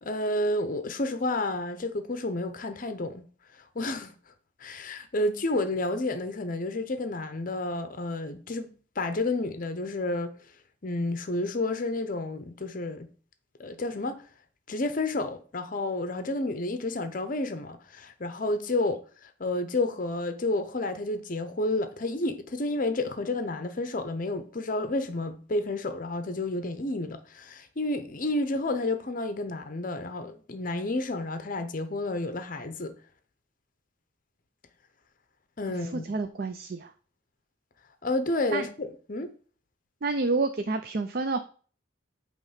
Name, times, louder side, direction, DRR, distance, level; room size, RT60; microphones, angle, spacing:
voice 1, 0.0-3.2 3.5-4.1 4.6-10.3 10.8-13.1 13.6-14.2 14.7-32.9 35.6-36.1 38.0-39.3, left 2 dB, 45° left, 0.7 m, -30 dB
voice 2, 35.8-36.9 38.5-38.7 40.0-41.4, right 3 dB, 50° right, 0.5 m, -29 dB
8.8 x 3.1 x 5.6 m
head